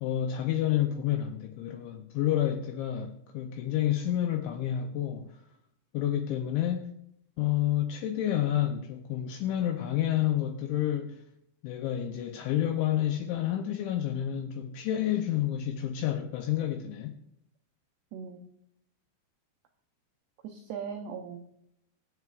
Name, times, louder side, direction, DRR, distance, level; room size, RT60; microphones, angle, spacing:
voice 1, 0.0-5.4 5.9-6.9 7.4-11.2 11.6-17.2, left 11 dB, 85° left, 2.6 m, -29 dB
voice 2, 18.1-18.5 20.4-21.4, right 6 dB, 90° right, 2.3 m, -39 dB
23.5 x 8.3 x 2.4 m
omnidirectional pair, 6.0 m